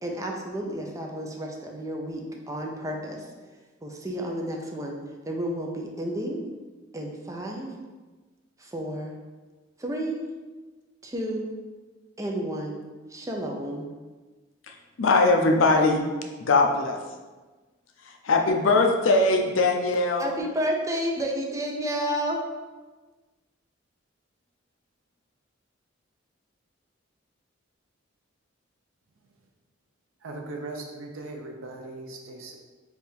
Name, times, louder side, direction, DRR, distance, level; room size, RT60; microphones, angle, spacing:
voice 1, 0.0-3.3 3.8-5.0 5.3-6.4 6.9-7.7 8.6-9.1 9.8-10.2 11.0-11.5 12.2-12.8 13.1-13.9 20.2-22.4, equal, 15° right, 0 dB, 0.5 m, -31 dB
voice 2, 14.7-16.1 16.4-17.0 18.0-20.3, left 3 dB, 70° left, 2 dB, 0.5 m, -21 dB
voice 3, 30.2-32.5, right 2 dB, 85° right, 2 dB, 0.6 m, -38 dB
3.5 x 2.5 x 4.3 m, 1.3 s
head